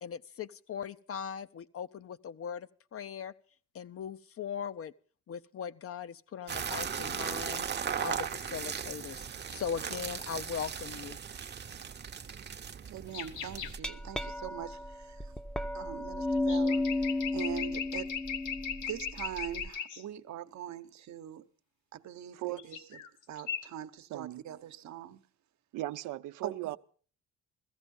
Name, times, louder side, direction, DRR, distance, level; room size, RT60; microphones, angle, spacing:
voice 1, 0.0-3.3 3.7-4.9 5.3-7.7 8.0-9.2 9.5-11.2, left 7 dB, 50° left, 0.7 m, -39 dB
sound 1, 6.5-13.8, right 7 dB, 35° right, 0.8 m, -37 dB
voice 2, 12.9-15.3 15.7-18.2 18.8-21.5 21.9-23.0 23.3-25.3 26.4-26.8, right 10 dB, 65° right, 1.0 m, -42 dB
sound 2, 13.1-13.7 16.4-20.0 22.6-23.1 23.4-23.7, left 8 dB, 85° left, 1.2 m, -38 dB
Glass, 13.5-19.7, left 2 dB, 5° left, 0.7 m, -33 dB
voice 3, 24.1-24.4 25.7-26.8, right 16 dB, 90° right, 0.6 m, -37 dB
16.0 x 14.5 x 5.3 m
cardioid pair, 90°, 30 cm